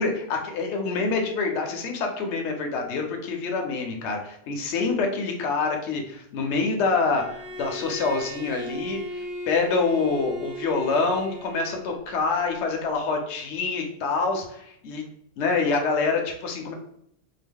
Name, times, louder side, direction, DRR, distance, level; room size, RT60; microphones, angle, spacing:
voice 1, 0.0-15.0 15.4-16.7, left 4 dB, 70° left, 3 dB, 0.9 m, -26 dB
Bowed string instrument, 7.1-12.0, right 1 dB, 60° right, 0.8 m, -37 dB
2.9 x 2.0 x 3.5 m, 0.72 s
omnidirectional pair, 1.3 m